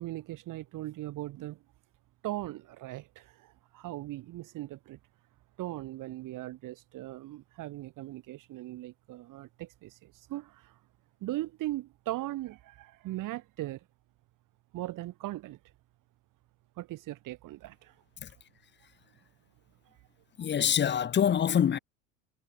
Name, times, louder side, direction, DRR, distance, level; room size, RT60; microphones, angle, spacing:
voice 1, 0.0-1.6 2.2-5.0 5.6-10.8 11.2-13.8 14.7-15.6 16.8-17.9, right 16 dB, 50° right, 5.6 m, -39 dB
voice 2, 20.4-21.8, left 8 dB, 25° left, 1.1 m, -25 dB
hypercardioid pair, 75°, 40 cm